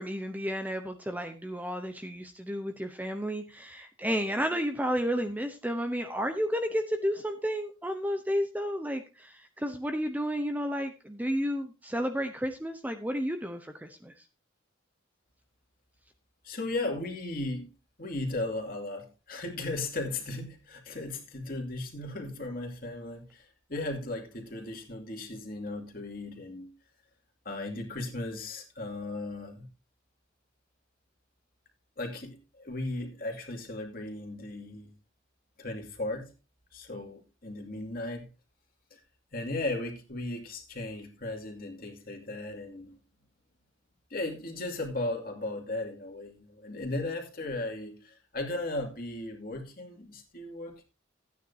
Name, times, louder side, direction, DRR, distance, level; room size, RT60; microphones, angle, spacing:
voice 1, 0.0-14.1, equal, 10° right, 0.8 m, -32 dB
voice 2, 16.4-17.7 18.0-26.7 27.4-29.7 32.0-34.9 35.6-36.3 36.7-38.3 38.9-39.0 39.3-43.0 44.1-50.8, left 2 dB, 45° left, 2.5 m, -36 dB
14.5 x 9.4 x 2.8 m
head